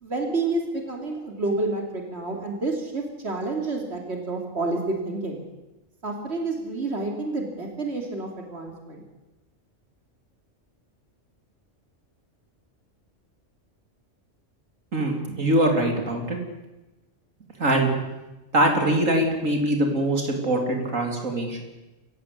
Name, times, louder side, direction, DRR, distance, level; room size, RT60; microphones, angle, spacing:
voice 1, 0.0-5.4 6.0-9.0, right 2 dB, 55° right, 2 dB, 3.3 m, -29 dB
voice 2, 14.9-16.4 17.6-17.9 18.5-21.6, right 1 dB, 90° right, 3 dB, 3.9 m, -23 dB
28.0 x 16.0 x 8.4 m, 1.1 s
omnidirectional pair, 1.3 m